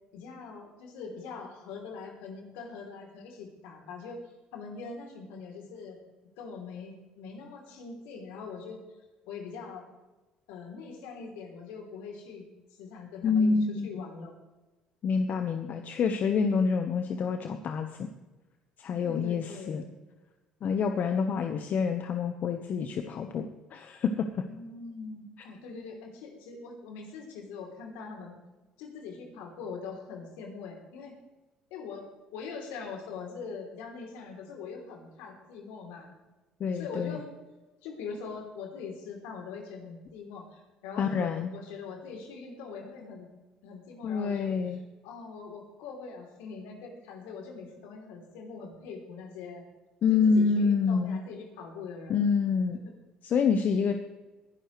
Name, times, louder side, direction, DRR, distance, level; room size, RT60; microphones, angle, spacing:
voice 1, 0.1-4.2 4.5-6.0 6.4-8.8 9.3-9.9 10.5-14.3 19.0-20.0 24.5-28.4 28.8-31.1 31.7-36.1 36.7-37.2 37.8-43.3 43.6-44.5 45.0-49.6 50.1-52.2 52.7-52.8, left 5 dB, 75° left, 2 dB, 3.2 m, -42 dB
voice 2, 13.2-14.0 15.0-18.1 18.8-19.8 20.6-24.4 36.6-37.2 41.0-41.5 44.0-44.8 50.0-51.2 52.1-52.8 53.2-53.9, left 5 dB, 55° left, 7 dB, 1.0 m, -27 dB
21.0 x 11.5 x 3.2 m, 1.1 s
hypercardioid pair, 60°, 3 cm